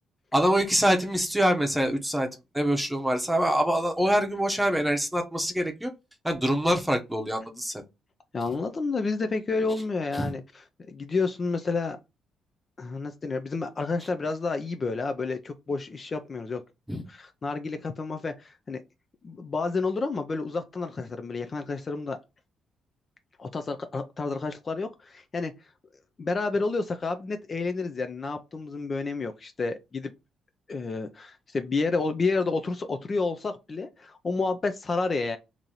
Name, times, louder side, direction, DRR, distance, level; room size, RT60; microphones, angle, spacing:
voice 1, 0.3-2.3 2.5-5.9 6.2-7.8 10.2-10.3 16.9-17.0, equal, 5° right, 0.9 m, -25 dB
voice 2, 8.3-10.4 10.9-12.0 12.8-16.6 17.1-18.8 19.2-22.2 23.4-25.5 26.2-30.1 30.7-35.4, left 3 dB, 35° left, 0.5 m, -30 dB
3.0 x 2.7 x 3.9 m
cardioid pair, 90°, 0 cm